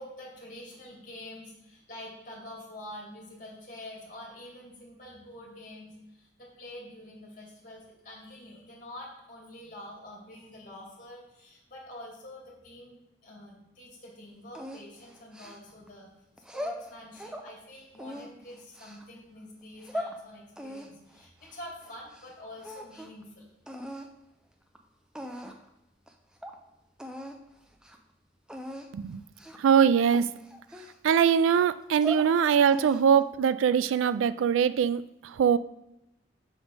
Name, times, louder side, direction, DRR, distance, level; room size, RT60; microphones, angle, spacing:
voice 1, 0.0-16.2 16.5-23.5, left 1 dB, 45° left, -3 dB, 2.4 m, -46 dB
sound 1, 14.5-15.9 16.4-17.5 17.9-19.0 19.6-20.2 20.6-22.3 22.6-23.2 23.7-24.1 24.7-24.8 25.1-25.7 26.1-26.2 26.4-26.6 27.0-27.4 27.7-28.0 28.5-28.9 29.4-29.7 30.1-31.3 31.8-32.3 32.7-33.2, equal, 5° right, 0.4 m, -39 dB
voice 2, 29.6-30.3 31.0-35.6, right 7 dB, 85° right, 15 dB, 0.3 m, -22 dB
6.3 x 5.1 x 4.7 m, 0.90 s
head